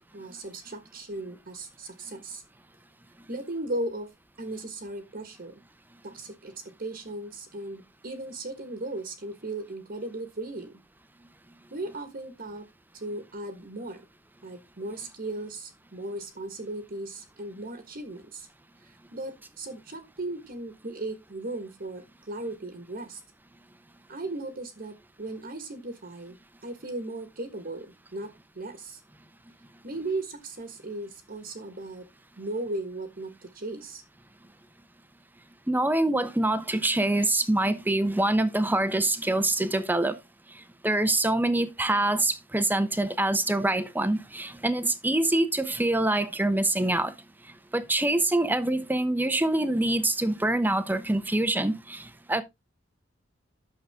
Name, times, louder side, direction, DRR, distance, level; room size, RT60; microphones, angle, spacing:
voice 1, 0.1-2.4 3.3-4.1 4.4-5.6 6.0-10.8 11.7-12.7 12.9-14.0 14.4-18.5 19.1-23.2 24.1-29.0 29.8-32.0 32.4-34.0, right 2 dB, 45° right, 1.5 m, -37 dB
voice 2, 35.7-40.2 40.8-47.1 47.7-52.4, right 1 dB, 10° right, 0.9 m, -25 dB
9.3 x 6.6 x 3.6 m
head